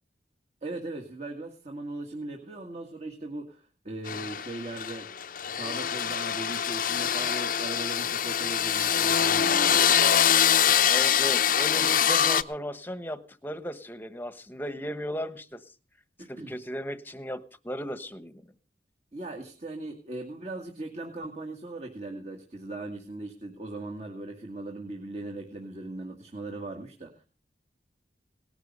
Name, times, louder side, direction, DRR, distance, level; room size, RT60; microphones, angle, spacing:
voice 1, 0.6-5.1 5.5-10.4 16.2-16.5 19.1-27.2, right 2 dB, 40° right, 2 dB, 1.9 m, -39 dB
sound 1, 4.1-12.4, left 9 dB, 50° left, 0.7 m, -24 dB
voice 2, 10.9-15.6 16.3-18.4, equal, 10° left, 12 dB, 1.1 m, -36 dB
18.5 x 12.0 x 5.4 m, 0.38 s
head